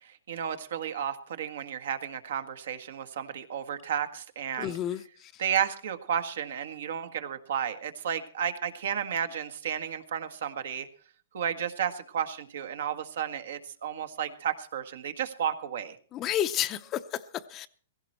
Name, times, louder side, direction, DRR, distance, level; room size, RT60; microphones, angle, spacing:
voice 1, 0.0-4.7 5.4-10.9 11.3-16.0, right 8 dB, 70° right, 1.6 m, -32 dB
voice 2, 4.6-5.4 16.1-17.7, left 11 dB, 25° left, 0.7 m, -31 dB
16.5 x 16.0 x 4.4 m
hypercardioid pair, 145°, 0 cm